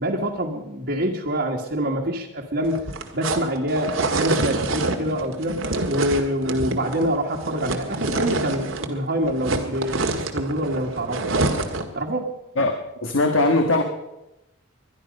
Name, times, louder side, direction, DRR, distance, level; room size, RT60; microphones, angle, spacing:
voice 1, 0.0-2.9 3.1-11.2 11.9-12.3, equal, 60° right, -3 dB, 1.8 m, -26 dB
sound 1, 2.6-9.0 9.2-12.0, right 2 dB, 80° right, 1.8 m, -27 dB
voice 2, 12.6-13.8, left 2 dB, 75° left, 5 dB, 1.5 m, -20 dB
21.5 x 12.0 x 5.3 m, 0.92 s
head